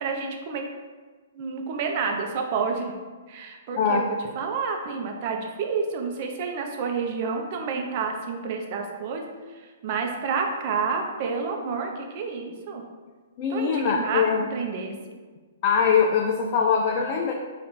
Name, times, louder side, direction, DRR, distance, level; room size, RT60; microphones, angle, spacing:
voice 1, 0.0-0.6 1.3-2.9 3.3-4.0 4.4-9.2 9.8-12.8 13.5-14.9, right 5 dB, 45° right, 2 dB, 0.7 m, -29 dB
voice 2, 3.8-4.1 13.4-14.5 15.6-17.3, left 6 dB, 40° left, 1 dB, 0.4 m, -22 dB
4.2 x 2.5 x 4.3 m, 1.4 s
hypercardioid pair, 130°, 0 cm